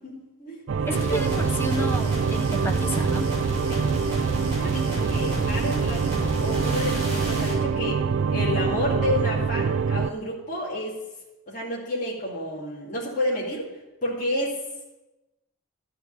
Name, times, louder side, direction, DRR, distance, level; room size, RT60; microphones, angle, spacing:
voice 1, 0.0-1.3 3.7-3.9 4.6-8.0 8.3-11.0 11.5-13.6 14.0-14.6, left 1 dB, 35° left, -6 dB, 2.4 m, -30 dB
sound 1, 0.7-10.1, right 6 dB, 65° right, 0.4 m, -25 dB
voice 2, 0.9-3.3, equal, 10° left, 4 dB, 0.8 m, -32 dB
sound 2, 0.9-7.6, equal, 25° right, 3.7 m, -31 dB
12.5 x 4.6 x 8.6 m, 1.0 s
head